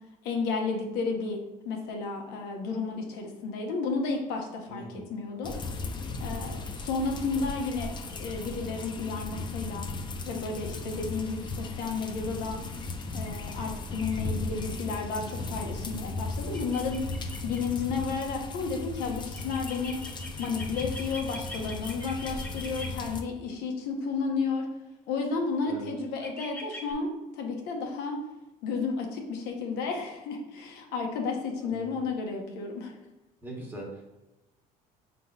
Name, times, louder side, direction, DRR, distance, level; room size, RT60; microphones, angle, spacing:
voice 1, 0.2-5.6 6.2-7.9 8.2-9.9 10.3-12.6 13.1-17.1 17.4-20.0 20.4-24.7 25.1-28.2 28.6-32.9, left 4 dB, 80° left, 2 dB, 0.9 m, -32 dB
voice 2, 4.7-5.0 25.6-25.9 31.6-32.0 33.4-34.0, right 1 dB, 15° right, -1 dB, 1.1 m, -41 dB
sound 1, 5.4-23.2, left 3 dB, 30° left, 0.5 m, -36 dB
sound 2, 16.5-17.6 19.2-22.9 25.5-25.8 26.1-26.9, left 1 dB, 10° left, 0.9 m, -42 dB
4.8 x 3.8 x 2.3 m, 0.99 s
cardioid pair, 110°, 16 cm